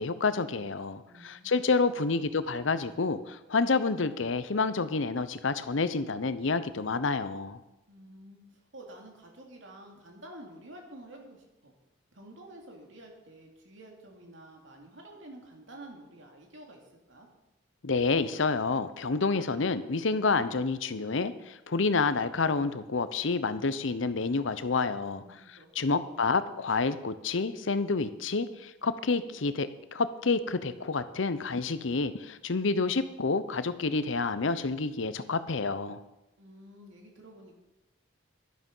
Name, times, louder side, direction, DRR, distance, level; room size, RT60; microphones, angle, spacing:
voice 1, 0.0-7.6 17.8-25.2 25.8-36.0, left 4 dB, 75° left, 13 dB, 0.8 m, -29 dB
voice 2, 1.1-1.5 1.8-2.3 7.9-11.8 12.1-16.8 17.1-17.3 25.2-26.2 36.4-37.5, right 1 dB, 70° right, 1 dB, 2.8 m, -50 dB
11.5 x 11.5 x 5.5 m, 0.96 s
head